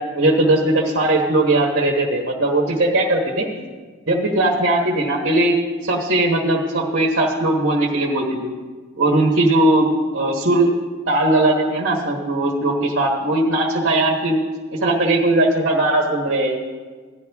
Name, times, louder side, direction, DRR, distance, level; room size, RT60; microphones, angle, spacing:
voice 1, 0.1-3.5 4.1-8.5 9.0-9.9 10.1-10.7 11.1-14.4 14.7-16.6, right 2 dB, 50° right, -1 dB, 1.4 m, -19 dB
16.0 x 11.5 x 3.5 m, 1.5 s
head